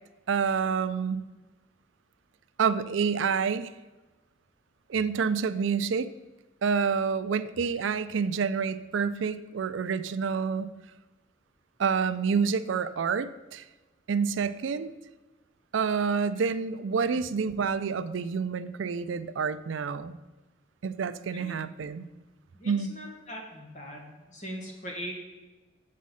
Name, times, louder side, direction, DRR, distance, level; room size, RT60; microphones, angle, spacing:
voice 1, 0.3-1.2 2.6-3.7 4.9-6.1 6.6-10.7 11.8-13.6 14.1-14.9 15.7-20.2 20.8-22.1 22.7-22.9, right 6 dB, 80° right, 14 dB, 0.4 m, -28 dB
voice 2, 22.5-25.2, equal, 40° left, 0 dB, 2.0 m, -41 dB
7.5 x 7.4 x 5.5 m, 1.2 s
head